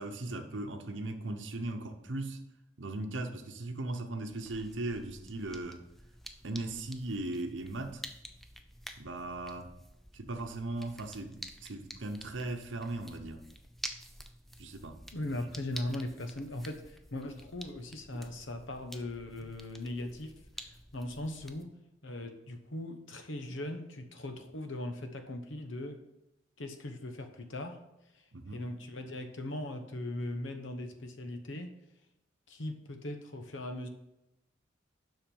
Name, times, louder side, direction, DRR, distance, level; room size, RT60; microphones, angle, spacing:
voice 1, 0.0-2.4 2.8-5.8 6.4-8.0 9.0-9.7 10.1-13.4 14.6-15.0 15.2-15.3 18.1-18.2 28.3-28.6, right 2 dB, 65° right, 5 dB, 0.9 m, -38 dB
sound 1, 4.3-21.6, equal, ahead, 0.5 m, -50 dB
voice 2, 15.1-26.0 26.6-27.8 28.1-28.2 28.5-31.7 32.5-33.9, left 1 dB, 70° left, 7 dB, 1.0 m, -39 dB
7.3 x 5.8 x 5.4 m, 0.91 s
head